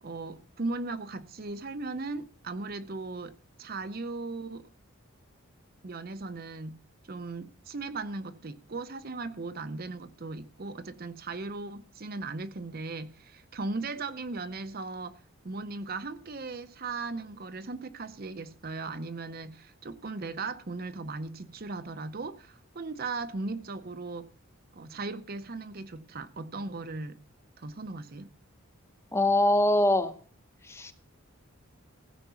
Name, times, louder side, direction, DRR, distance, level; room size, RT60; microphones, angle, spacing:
voice 1, 0.0-3.3 3.6-4.7 5.8-6.8 7.1-15.2 15.4-24.3 24.7-27.2 27.6-28.3, right 3 dB, 45° right, 0.7 m, -37 dB
voice 2, 29.1-30.1 30.6-30.9, left 1 dB, 10° left, 0.8 m, -23 dB
15.5 x 5.8 x 6.9 m
head